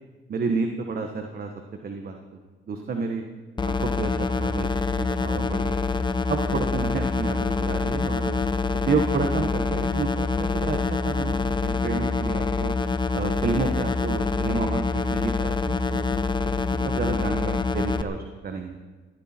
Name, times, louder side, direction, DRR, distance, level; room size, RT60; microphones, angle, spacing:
voice 1, 0.3-1.5 1.8-2.2 2.7-3.2 3.6-5.8 6.3-8.4 8.9-10.8 11.0-12.7 13.1-16.0 16.6-18.8, right 4 dB, 50° right, 4 dB, 1.4 m, -30 dB
sound 1, 3.6-18.0, left 4 dB, 20° left, 0.7 m, -26 dB
16.5 x 15.5 x 4.5 m, 1.3 s
cardioid pair, 90°, 20 cm